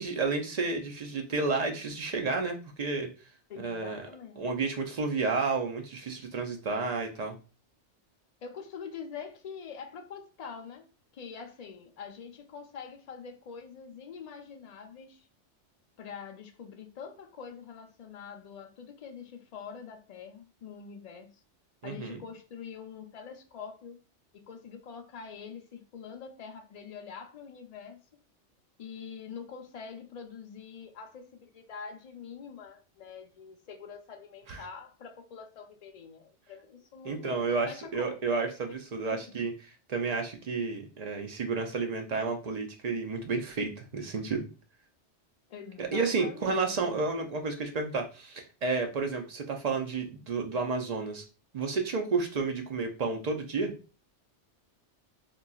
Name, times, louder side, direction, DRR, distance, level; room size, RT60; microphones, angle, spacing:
voice 1, 0.0-3.1 3.6-4.1 4.4-7.4 21.8-22.2 34.5-34.6 37.0-44.5 45.8-51.2 51.5-53.7, right 4 dB, 65° right, 0.4 m, -31 dB
voice 2, 3.5-4.4 8.4-10.9 11.1-15.3 16.0-21.3 21.8-24.0 24.5-28.0 28.8-38.2 39.1-39.2 45.5-46.7, left 6 dB, 65° left, 0.3 m, -45 dB
3.8 x 2.3 x 2.3 m
omnidirectional pair, 1.2 m